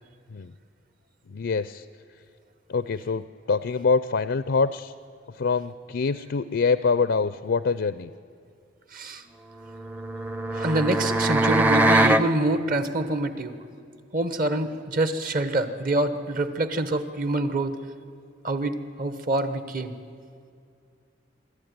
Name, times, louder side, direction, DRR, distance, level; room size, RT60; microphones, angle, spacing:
voice 1, 1.3-1.9 2.7-4.9 5.3-8.1, left 4 dB, 70° left, 14 dB, 0.5 m, -25 dB
voice 2, 8.9-9.3 10.5-13.6 14.1-17.8 18.4-19.9, right 2 dB, 50° right, 11 dB, 1.2 m, -26 dB
sound 1, 9.7-12.3, right 1 dB, 10° right, 0.6 m, -22 dB
24.0 x 13.0 x 9.5 m, 2.4 s
head